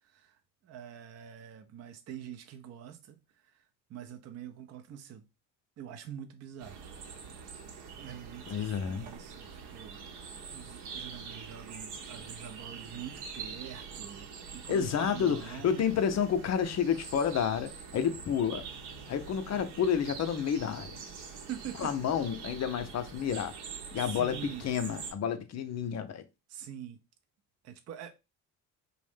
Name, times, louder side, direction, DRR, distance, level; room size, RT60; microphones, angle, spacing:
voice 1, 0.0-3.6 3.9-5.3 5.8-6.8 7.9-15.9 21.3-21.9 24.0-24.7 26.5-27.0 27.6-28.2, right 9 dB, 40° right, 0.5 m, -45 dB
sound 1, 6.6-25.1, right 6 dB, 65° right, 0.8 m, -45 dB
voice 2, 8.5-9.1 14.7-18.6 19.1-21.0 21.8-23.6 23.9-26.2, left 8 dB, 40° left, 0.6 m, -30 dB
2.5 x 2.1 x 3.5 m
hypercardioid pair, 60°, 42 cm